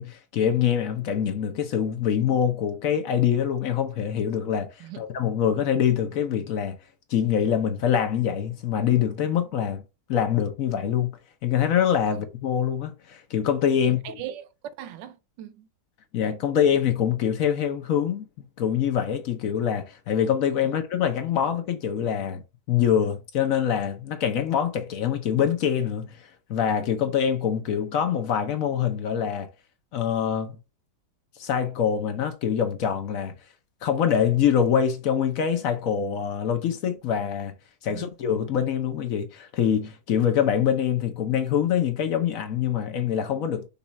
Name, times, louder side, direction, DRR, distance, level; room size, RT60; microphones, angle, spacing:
voice 1, 0.0-6.8 7.1-9.8 10.1-14.2 16.1-29.5 29.9-30.5 31.4-33.4 33.8-37.5 37.8-43.7, left 8 dB, 60° left, 0.9 m, -25 dB
voice 2, 13.8-14.5 14.8-15.7 20.6-20.7 37.9-38.1, right 11 dB, 80° right, 1.3 m, -39 dB
5.5 x 2.4 x 4.0 m
omnidirectional pair, 2.0 m